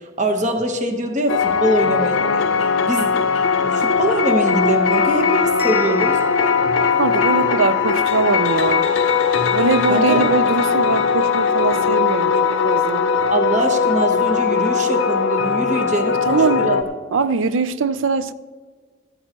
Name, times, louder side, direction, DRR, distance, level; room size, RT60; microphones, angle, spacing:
voice 1, 0.0-3.2 3.6-6.2 9.9-10.2 13.3-16.8, right 2 dB, 35° right, 1.0 m, -23 dB
sound 1, 1.3-16.8, left 6 dB, 80° left, 0.6 m, -19 dB
Bell, 5.6-7.6, left 4 dB, 10° right, 1.0 m, -35 dB
voice 2, 7.0-8.9 9.5-13.1 16.3-16.7 17.1-18.3, right 4 dB, 80° right, 0.5 m, -21 dB
15.0 x 13.0 x 3.0 m
head